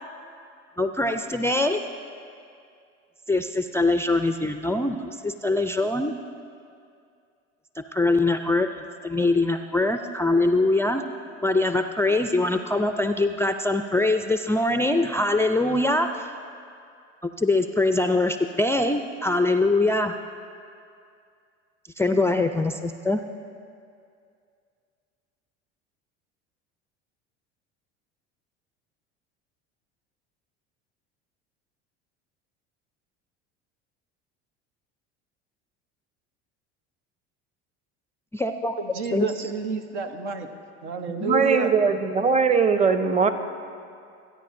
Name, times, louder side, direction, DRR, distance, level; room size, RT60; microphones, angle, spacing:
voice 1, 0.8-1.8 3.3-6.1 7.8-11.0 11.4-16.3 17.4-20.1 22.0-23.2 38.3-38.7 39.1-39.3, left 2 dB, 10° left, 7 dB, 0.3 m, -23 dB
voice 2, 38.8-40.5 40.8-41.7, right 5 dB, 85° right, 6 dB, 0.9 m, -29 dB
voice 3, 41.2-43.3, right 5 dB, 20° right, 9 dB, 0.8 m, -20 dB
23.0 x 9.4 x 2.6 m, 2.3 s
hypercardioid pair, 75°, 33 cm